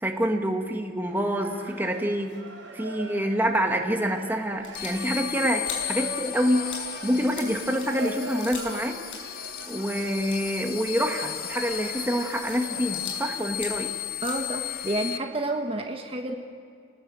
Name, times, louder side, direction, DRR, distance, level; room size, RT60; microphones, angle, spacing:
voice 1, 0.0-2.4 2.7-6.8 7.0-9.0 9.7-13.9, equal, 10° right, 2 dB, 1.7 m, -27 dB
sound 1, 1.0-13.5, right 2 dB, 90° right, 4.5 m, -42 dB
sound 2, 4.5-8.8 9.0-13.3 13.5-15.0, left 5 dB, 85° left, 5.9 m, -42 dB
sound 3, 4.7-15.2, left 13 dB, 50° left, 1.0 m, -35 dB
voice 2, 14.2-16.3, right 2 dB, 30° right, 3 dB, 1.5 m, -30 dB
29.0 x 19.5 x 7.8 m, 2.3 s
head